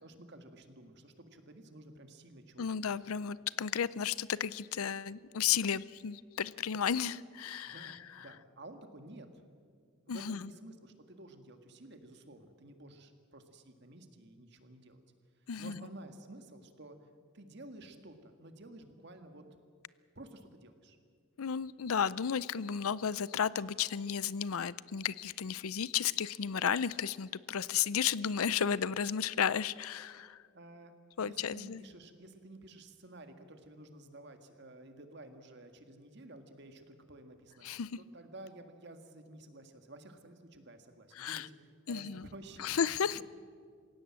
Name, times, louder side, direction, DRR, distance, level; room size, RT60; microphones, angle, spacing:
voice 1, 0.0-2.8 7.6-9.4 10.1-15.0 15.6-17.0 17.3-19.4 20.2-21.0 30.5-30.9 31.2-43.2, right 1 dB, 50° right, 7 dB, 1.9 m, -52 dB
voice 2, 2.6-8.0 10.1-10.5 15.5-15.9 21.4-30.4 31.2-31.8 37.6-38.0 41.2-41.5 41.9-42.3 42.6-43.2, left 7 dB, 80° left, 19 dB, 0.5 m, -33 dB
27.0 x 16.5 x 7.5 m, 2.1 s
head